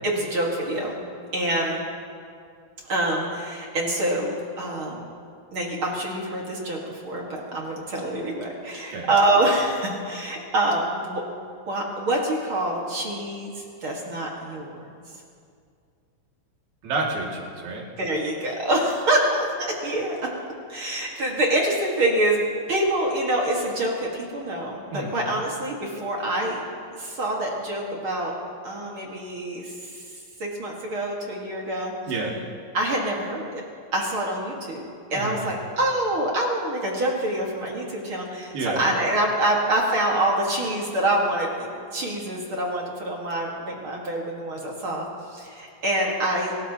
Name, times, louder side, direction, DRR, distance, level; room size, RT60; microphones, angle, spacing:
voice 1, 0.0-1.0 1.3-1.8 2.9-5.1 5.5-11.2 11.7-14.9 18.0-20.2 20.7-22.4 22.7-26.6 26.9-28.3 28.6-30.0 30.4-31.9 32.7-33.6 33.9-46.5, right 1 dB, 45° right, -2 dB, 2.1 m, -26 dB
voice 2, 16.8-17.9 24.9-25.2 32.1-32.4 35.1-35.5 38.5-38.8, right 3 dB, 80° right, -3 dB, 4.3 m, -29 dB
25.0 x 18.0 x 2.9 m, 2.3 s
omnidirectional pair, 4.2 m